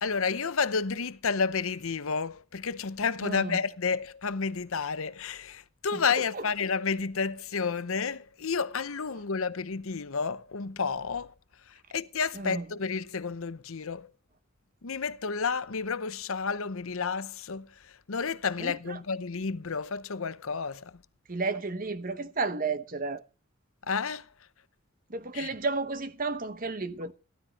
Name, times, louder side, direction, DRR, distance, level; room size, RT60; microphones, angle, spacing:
voice 1, 0.0-11.3 11.9-14.1 14.8-17.7 18.1-20.9 23.9-24.2 25.3-25.5, left 5 dB, 75° left, 0.8 m, -31 dB
voice 2, 3.2-3.6 5.9-6.0 6.3-6.4 12.3-12.6 18.6-19.0 21.3-23.2 25.1-27.1, right 3 dB, 40° right, 1.0 m, -32 dB
15.5 x 12.5 x 4.1 m
head